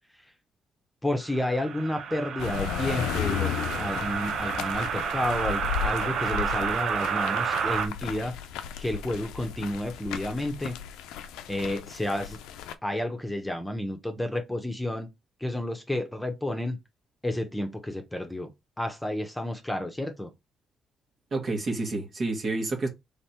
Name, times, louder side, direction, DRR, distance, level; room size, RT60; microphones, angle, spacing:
voice 1, 1.0-8.3 8.8-10.8 11.5-12.4 12.8-15.1 15.4-16.8 17.2-18.5 18.8-20.3, left 1 dB, 10° left, 1.1 m, -31 dB
sound 1, 1.3-7.9, right 7 dB, 65° right, 0.7 m, -30 dB
sound 2, 2.4-12.7, left 9 dB, 85° left, 0.5 m, -35 dB
voice 2, 21.3-22.9, right 2 dB, 50° right, 1.7 m, -29 dB
3.6 x 3.2 x 4.3 m
supercardioid pair, 60°, 0 cm